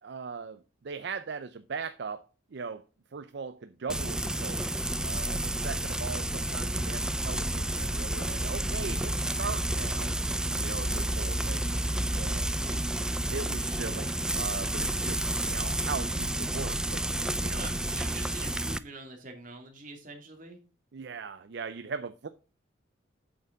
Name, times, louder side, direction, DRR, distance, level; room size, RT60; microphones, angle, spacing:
voice 1, 0.0-2.2 2.5-2.8 3.1-10.1 10.6-12.5 13.3-15.2 15.5-17.0 17.4-17.7 20.9-22.3, right 5 dB, 60° right, 0.5 m, -39 dB
Frying (food), 3.9-18.8, right 1 dB, 5° right, 0.3 m, -30 dB
voice 2, 17.5-20.6, right 2 dB, 45° right, 2.6 m, -45 dB
8.5 x 6.7 x 3.9 m
head